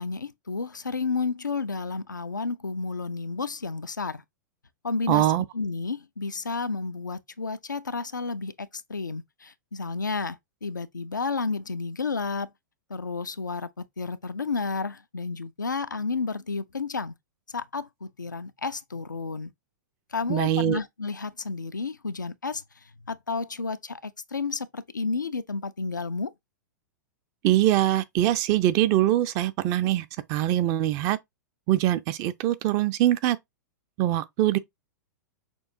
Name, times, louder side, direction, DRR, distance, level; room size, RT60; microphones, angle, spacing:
voice 1, 0.0-4.2 4.8-5.3 5.5-12.5 12.9-17.1 17.5-19.5 20.1-22.6 23.1-26.3, left 4 dB, 85° left, 0.4 m, -31 dB
voice 2, 5.1-5.4 20.3-20.8 27.4-31.2 31.7-33.4 34.0-34.6, right 13 dB, 35° right, 0.4 m, -23 dB
6.1 x 2.4 x 2.6 m
figure-of-eight pair, 100°, 10 cm